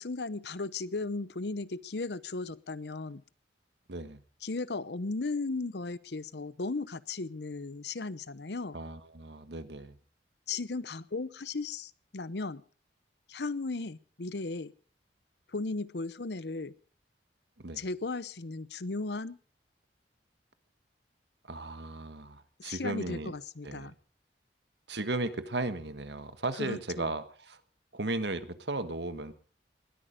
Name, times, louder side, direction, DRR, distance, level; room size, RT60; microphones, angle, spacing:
voice 1, 0.0-3.2 4.4-8.8 10.5-12.6 13.3-14.7 15.5-16.7 17.8-19.4 22.6-23.9 26.6-27.1, left 3 dB, 70° left, 17 dB, 0.8 m, -36 dB
voice 2, 3.9-4.2 8.7-10.0 17.6-17.8 21.4-23.3 23.6-23.9 24.9-27.6 27.9-29.3, right 2 dB, 75° right, 11 dB, 1.5 m, -36 dB
20.5 x 13.0 x 5.1 m, 0.42 s
head